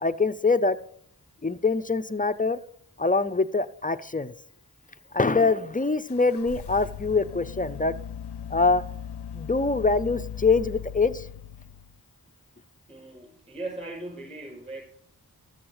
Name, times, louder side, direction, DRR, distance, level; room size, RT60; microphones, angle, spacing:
voice 1, 0.0-0.8 1.4-2.6 3.0-4.3 5.1-8.0 8.5-8.8 9.3-11.3, left 3 dB, 20° left, 11 dB, 0.5 m, -24 dB
sound 1, 6.1-12.0, left 9 dB, 85° left, 0.6 m, -38 dB
voice 2, 12.9-14.8, right 2 dB, 15° right, -1 dB, 5.8 m, -38 dB
13.5 x 7.7 x 4.8 m, 0.65 s
wide cardioid pair, 95°, 39 cm